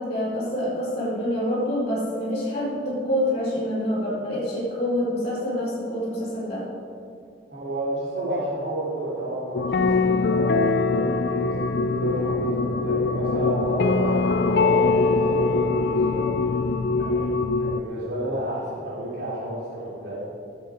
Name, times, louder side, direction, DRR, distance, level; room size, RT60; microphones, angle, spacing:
voice 1, 0.0-6.6, equal, 40° left, -11 dB, 3.9 m, -26 dB
voice 2, 7.5-14.2 14.4-16.3 16.9-17.3 17.6-20.2, right 1 dB, 80° right, -9 dB, 3.6 m, -31 dB
sound 1, 9.5-17.8, left 3 dB, 65° left, 0.5 m, -22 dB
18.0 x 7.8 x 5.1 m, 2.4 s
head